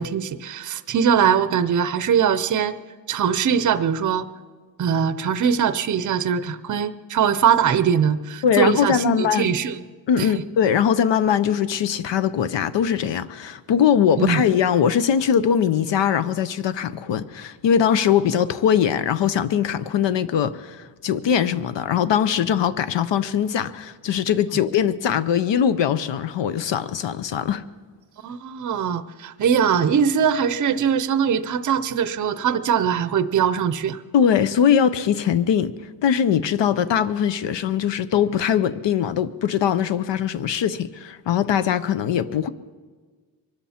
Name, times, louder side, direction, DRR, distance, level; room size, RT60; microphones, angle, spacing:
voice 1, 0.0-2.8 3.1-4.3 4.8-9.8 10.2-10.4 14.2-14.4 28.2-34.0, right 7 dB, 40° right, 13 dB, 0.6 m, -21 dB
voice 2, 8.4-9.5 10.1-27.6 34.1-35.7 36.0-42.5, left 8 dB, 70° left, 13 dB, 0.7 m, -21 dB
23.5 x 13.0 x 4.3 m, 1.5 s
wide cardioid pair, 135°, 46 cm